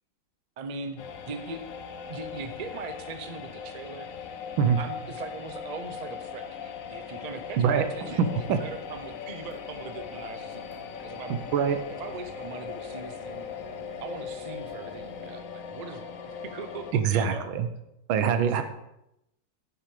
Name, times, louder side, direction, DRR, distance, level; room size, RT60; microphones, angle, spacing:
voice 1, 0.6-1.6 1.9-4.3 4.8-11.4 12.0-13.5 14.0-17.5, right 4 dB, 55° right, 7 dB, 0.4 m, -40 dB
sound 1, 1.0-16.9, left 7 dB, 60° left, 0.9 m, -40 dB
sound 2, 7.6-15.4, right 1 dB, 25° right, 1.9 m, -52 dB
voice 2, 7.6-8.6 11.3-11.8 16.9-17.7 18.1-18.6, right 7 dB, 80° right, 9 dB, 1.7 m, -24 dB
9.3 x 8.8 x 4.9 m, 0.86 s
omnidirectional pair, 2.2 m